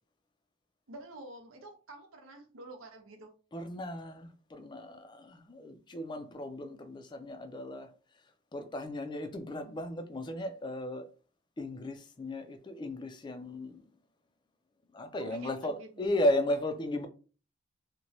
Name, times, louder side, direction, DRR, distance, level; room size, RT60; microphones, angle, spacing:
voice 1, 0.9-3.3 15.2-16.1, right 2 dB, 80° right, 0.6 m, -49 dB
voice 2, 3.5-7.9 8.5-11.1 11.6-13.8 14.9-17.1, left 1 dB, 20° left, 0.3 m, -35 dB
2.9 x 2.1 x 2.7 m
head